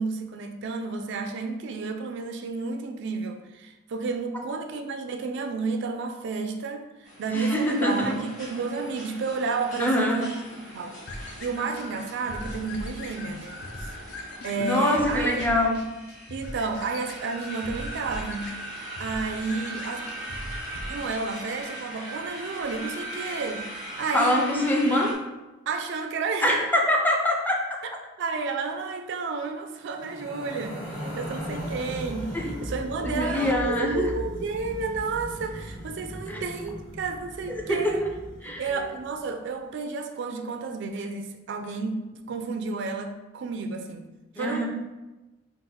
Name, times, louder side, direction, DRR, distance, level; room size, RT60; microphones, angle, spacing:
voice 1, 0.0-10.3 10.7-13.9 14.4-15.4 16.3-20.1 20.9-23.7 24.0-24.4 25.7-26.6 28.2-38.0 38.4-44.1 44.4-44.7, right 4 dB, 60° right, 5 dB, 0.4 m, -31 dB
sound 1, 7.0-25.1, right 1 dB, 40° left, 1.3 m, -40 dB
voice 2, 7.3-8.1 9.8-10.3 14.6-15.8 24.1-25.2 26.4-27.6 32.3-32.5 33.0-34.1 36.3-36.4 37.7-38.1 38.4-38.9 44.4-44.7, left 1 dB, 10° left, 0 dB, 0.5 m, -24 dB
sound 2, 11.1-21.2, left 1 dB, 55° left, 0.6 m, -40 dB
sound 3, 29.9-39.2, equal, 90° left, 1.2 m, -38 dB
3.9 x 2.4 x 4.1 m, 1.1 s
head